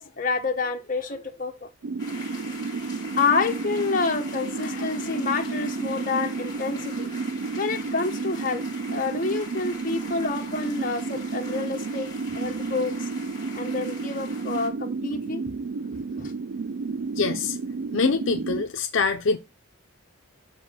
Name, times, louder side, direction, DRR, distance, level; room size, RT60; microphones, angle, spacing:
voice 1, 0.0-1.7 2.2-2.3 3.2-7.1 7.6-8.6 8.9-13.1 13.5-15.4 16.2-16.3, left 4 dB, 40° left, 1.0 m, -28 dB
sound 1, 1.8-18.6, right 4 dB, 65° right, 0.3 m, -32 dB
sound 2, 2.0-14.7, left 3 dB, 20° left, 1.5 m, -43 dB
sound 3, 5.1-9.9, right 2 dB, 45° right, 1.9 m, -42 dB
voice 2, 17.2-17.6 17.9-19.4, left 4 dB, 65° left, 0.6 m, -24 dB
6.0 x 4.6 x 5.6 m
head